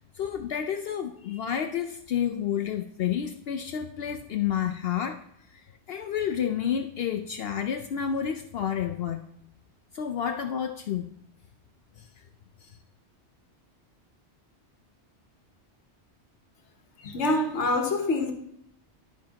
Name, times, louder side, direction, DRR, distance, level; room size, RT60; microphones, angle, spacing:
voice 1, 0.1-5.2 5.5-9.2 9.9-11.1 12.0-12.1 12.6-12.8, left 9 dB, 65° left, 0.7 m, -30 dB
voice 2, 17.0-18.3, left 2 dB, 85° left, 1.3 m, -26 dB
12.5 x 5.1 x 2.8 m
omnidirectional pair, 1.2 m